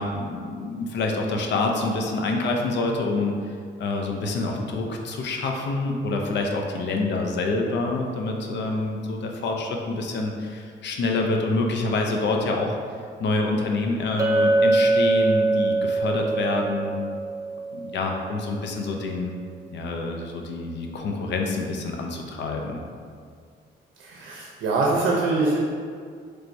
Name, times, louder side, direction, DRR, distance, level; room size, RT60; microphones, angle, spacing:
voice 1, 0.0-12.8 13.2-17.0 17.7-19.3 19.7-22.8, left 3 dB, 65° left, 2 dB, 0.5 m, -27 dB
Chink clink, 14.2-18.4, right 2 dB, 20° right, 0.4 m, -23 dB
voice 2, 24.0-25.6, right 3 dB, 70° right, -2 dB, 0.6 m, -23 dB
4.4 x 3.3 x 2.6 m, 2.1 s
cardioid pair, 90°, 20 cm